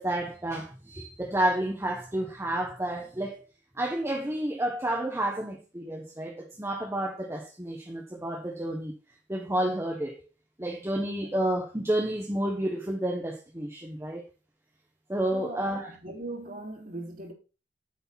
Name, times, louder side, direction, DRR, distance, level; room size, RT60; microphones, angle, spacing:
voice 1, 0.0-3.4 3.8-8.9 9.3-10.2 10.6-14.2 15.1-15.9, right 1 dB, 15° right, 1.2 m, -30 dB
voice 2, 15.3-17.3, right 2 dB, 50° right, 3.3 m, -39 dB
8.5 x 6.7 x 5.7 m
head